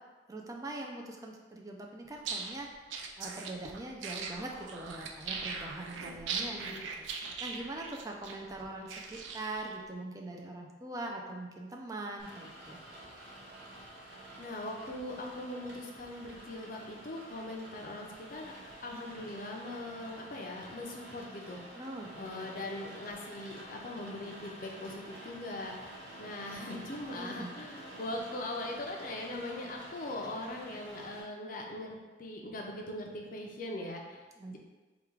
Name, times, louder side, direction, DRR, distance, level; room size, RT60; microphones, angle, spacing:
voice 1, 0.3-2.7 3.2-12.8 21.7-22.6 27.2-27.5 34.4-34.6, right 2 dB, 20° right, 0 dB, 0.4 m, -42 dB
sound 1, 2.1-9.7, right 5 dB, 85° right, 0.4 m, -40 dB
voice 2, 6.4-6.9 14.4-18.5 18.8-21.6 22.1-25.9 26.2-34.6, left 1 dB, 50° left, 1 dB, 0.5 m, -41 dB
Rain, 12.2-31.2, right 1 dB, 65° right, 0.8 m, -49 dB
3.5 x 2.4 x 4.5 m, 1.3 s
head